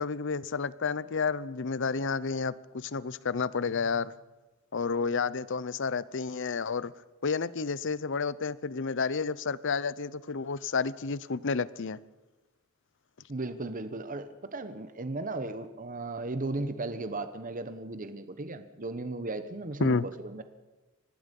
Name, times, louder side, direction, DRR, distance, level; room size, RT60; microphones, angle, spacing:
voice 1, 0.0-4.1 4.7-6.9 7.2-12.0 19.8-20.1, left 5 dB, 60° left, 19 dB, 0.7 m, -30 dB
voice 2, 13.3-20.4, right 2 dB, 40° right, 10 dB, 1.1 m, -36 dB
25.5 x 19.0 x 5.4 m, 1.2 s
head